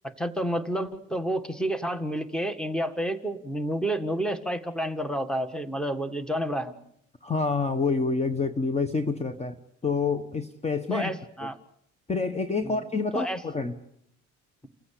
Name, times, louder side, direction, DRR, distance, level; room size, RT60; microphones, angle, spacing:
voice 1, 0.0-6.8 10.9-11.6 12.6-12.8 13.1-13.4, right 1 dB, ahead, 10 dB, 1.7 m, -30 dB
voice 2, 7.2-9.5 9.8-11.1 12.1-13.8, left 4 dB, 20° left, 9 dB, 1.3 m, -27 dB
29.0 x 15.5 x 8.4 m, 0.74 s
cardioid pair, 120°, 30 cm